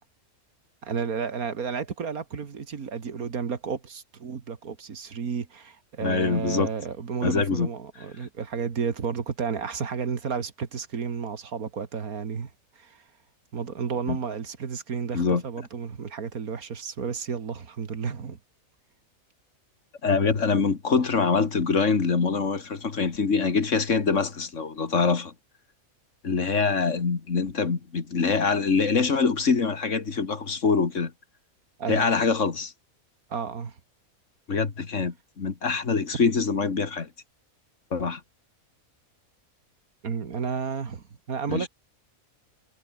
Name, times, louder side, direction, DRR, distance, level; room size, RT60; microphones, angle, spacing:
voice 1, 0.8-13.0 13.5-18.4 31.8-32.1 33.3-33.8 40.0-41.7, right 6 dB, 80° right, 2.3 m, -32 dB
voice 2, 6.0-6.7 7.2-7.7 14.1-14.2 15.1-15.4 20.0-25.3 26.2-31.1 31.9-32.7 34.5-37.1 37.9-38.2 41.5-41.7, left 5 dB, 60° left, 2.3 m, -24 dB
omnidirectional pair, 1.5 m